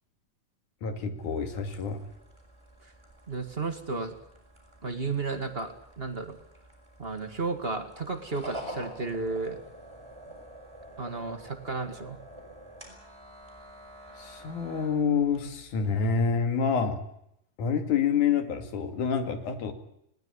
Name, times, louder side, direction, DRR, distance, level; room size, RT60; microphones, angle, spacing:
voice 1, 0.8-2.0 14.2-17.0 17.6-19.7, left 6 dB, 65° left, 8 dB, 3.7 m, -27 dB
sound 1, 1.2-16.3, equal, 5° right, 5.4 m, -48 dB
voice 2, 3.3-4.1 4.8-6.4 7.0-9.6 11.0-12.2, right 3 dB, 25° right, 7 dB, 1.3 m, -33 dB
20.5 x 18.5 x 9.7 m, 0.77 s
omnidirectional pair, 3.9 m